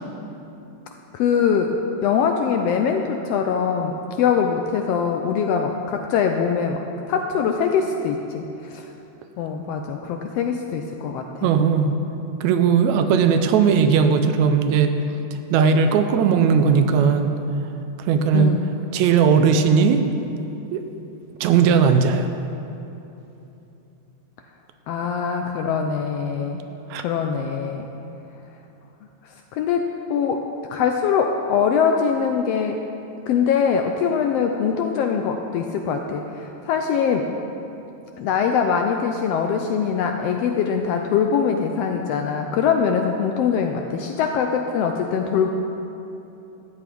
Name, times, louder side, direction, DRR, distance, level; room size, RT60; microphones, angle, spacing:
voice 1, 1.1-1.8 2.0-6.8 7.1-8.8 9.4-11.5 18.3-18.7 24.9-26.6 27.0-27.9 29.5-30.4 30.7-32.8 33.3-37.3 38.2-45.5, left 6 dB, 80° left, 4 dB, 1.4 m, -22 dB
voice 2, 11.4-11.9 12.4-14.9 15.5-17.3 18.1-18.5 18.9-20.1 20.7-20.8 21.4-22.3 26.9-27.1, right 6 dB, 80° right, 8 dB, 1.9 m, -17 dB
13.5 x 8.7 x 4.5 m, 2.9 s
omnidirectional pair, 3.3 m